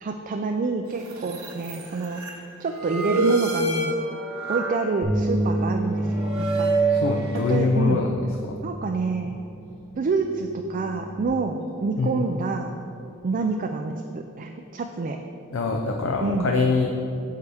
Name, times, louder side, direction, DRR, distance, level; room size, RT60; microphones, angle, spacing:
voice 1, 0.0-2.2 2.6-4.0 4.5-7.0 7.3-8.1 8.6-9.3 10.0-12.7 13.2-15.2 16.2-16.5, right 4 dB, 40° right, 4 dB, 0.4 m, -27 dB
sound 1, 1.0-2.3 2.7-4.8 5.3-5.6 5.9-7.5, right 2 dB, 70° right, 1.1 m, -26 dB
Bass guitar, 5.0-11.3, right 1 dB, 25° left, 1.2 m, -30 dB
voice 2, 6.9-8.1 8.4-8.6 12.0-12.3 15.5-16.9, left 3 dB, 65° left, 2 dB, 0.5 m, -24 dB
9.4 x 6.6 x 3.4 m, 2.8 s
head